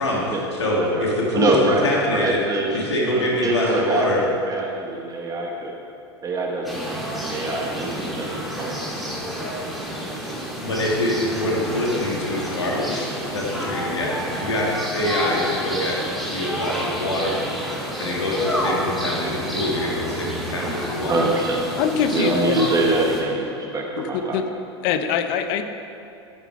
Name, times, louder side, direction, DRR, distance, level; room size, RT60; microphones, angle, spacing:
voice 1, 0.0-2.4 2.7-4.2 10.6-16.0 16.3-17.4 18.0-21.2, left 1 dB, 85° left, -3 dB, 2.6 m, -24 dB
voice 2, 1.3-2.8 3.1-4.0 4.5-5.7 6.2-7.0 7.3-8.8 21.1-21.6 22.1-24.5, right 2 dB, 25° right, -1 dB, 1.7 m, -24 dB
sound 1, 6.6-23.2, equal, ahead, 2.7 m, -29 dB
voice 3, 21.8-22.7 24.0-24.5 24.8-25.6, left 8 dB, 55° left, 8 dB, 1.0 m, -23 dB
11.5 x 9.2 x 4.9 m, 2.6 s
hypercardioid pair, 90°, 14 cm